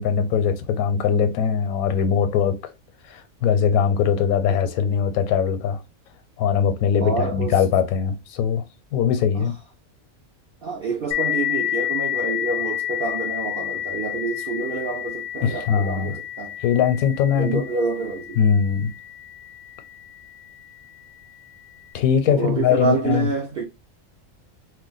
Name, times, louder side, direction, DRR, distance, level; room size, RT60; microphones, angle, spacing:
voice 1, 0.0-2.7 3.1-5.8 6.4-8.6 8.9-9.5 15.4-16.2 16.6-17.6 18.4-18.9 21.9-23.3, left 7 dB, 85° left, 1.0 m, -21 dB
voice 2, 7.0-7.6 9.3-9.5 10.6-16.6 17.4-18.4 22.3-23.6, right 4 dB, 70° right, 0.5 m, -27 dB
sound 1, 11.1-20.3, left 12 dB, 65° left, 0.6 m, -30 dB
2.5 x 2.2 x 3.8 m
omnidirectional pair, 1.5 m